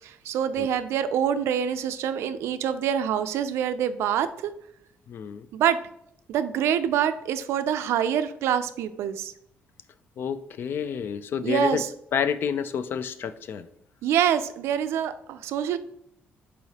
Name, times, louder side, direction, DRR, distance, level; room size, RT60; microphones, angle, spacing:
voice 1, 0.0-4.5 5.5-5.8 6.3-9.3 11.4-11.9 14.0-15.8, right 9 dB, 90° right, 11 dB, 0.3 m, -25 dB
voice 2, 5.1-5.5 10.2-11.8 12.1-13.7, left 7 dB, 55° left, 13 dB, 0.3 m, -29 dB
4.7 x 4.1 x 2.8 m, 0.73 s
cardioid pair, 120°, 4 cm